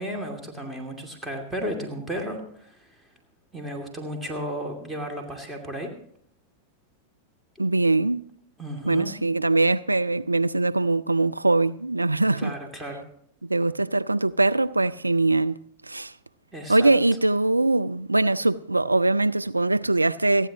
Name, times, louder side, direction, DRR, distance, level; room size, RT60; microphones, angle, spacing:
voice 1, 0.0-3.0 3.5-5.9 8.6-9.1 12.4-13.0 16.5-16.9, equal, 10° right, 2.5 m, -34 dB
voice 2, 7.6-8.2 8.9-12.5 13.4-15.6 15.9-16.1 16.7-20.5, right 2 dB, 85° right, 0.4 m, -22 dB
29.0 x 10.0 x 2.9 m
figure-of-eight pair, 90°, 0 cm